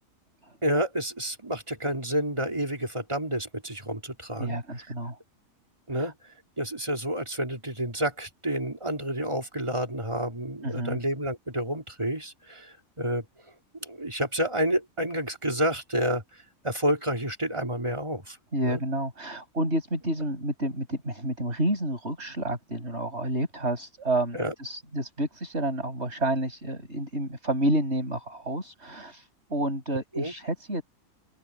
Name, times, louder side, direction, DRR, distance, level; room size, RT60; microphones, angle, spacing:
voice 1, 0.6-4.9 5.9-6.1 6.6-13.2 13.8-16.2 16.6-18.4 18.6-18.8 24.3-24.5 30.1-30.3, equal, 20° right, 3.7 m, -29 dB
voice 2, 4.4-5.2 5.9-6.1 10.6-11.0 18.5-30.8, right 1 dB, 50° right, 7.9 m, -30 dB
open air
omnidirectional pair, 1.4 m